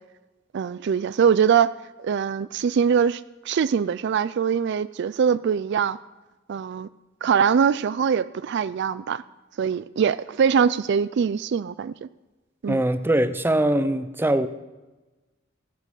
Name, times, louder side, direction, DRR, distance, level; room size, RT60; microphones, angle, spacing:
voice 1, 0.5-1.7 2.0-6.0 6.5-6.9 7.2-9.2 9.6-12.1 12.6-12.8, right 7 dB, 60° right, 0.3 m, -22 dB
voice 2, 12.7-14.5, right 1 dB, 10° right, 0.6 m, -22 dB
15.0 x 9.8 x 6.5 m
head